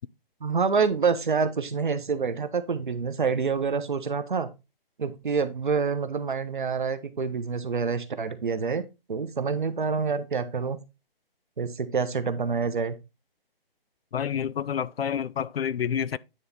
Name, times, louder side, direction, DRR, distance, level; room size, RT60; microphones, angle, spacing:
voice 1, 0.4-4.5 5.0-8.8 9.1-10.8 11.6-12.9, right 5 dB, 55° right, 1.0 m, -27 dB
voice 2, 14.1-16.2, left 8 dB, 90° left, 0.5 m, -28 dB
9.4 x 3.4 x 4.1 m
hypercardioid pair, 175°, 29 cm